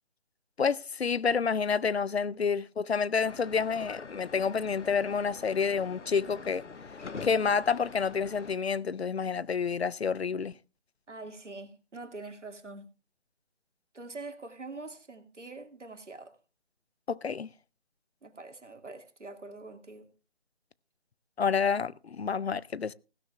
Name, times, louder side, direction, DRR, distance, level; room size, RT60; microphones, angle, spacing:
voice 1, 0.6-6.6 7.2-10.5 17.1-17.5 21.4-22.9, left 6 dB, 65° left, 0.6 m, -29 dB
sound 1, 3.2-8.6, left 4 dB, 85° left, 1.1 m, -45 dB
voice 2, 11.1-12.9 13.9-16.3 18.2-20.1, right 3 dB, 90° right, 2.5 m, -44 dB
16.0 x 12.5 x 3.3 m
figure-of-eight pair, 165°, 35 cm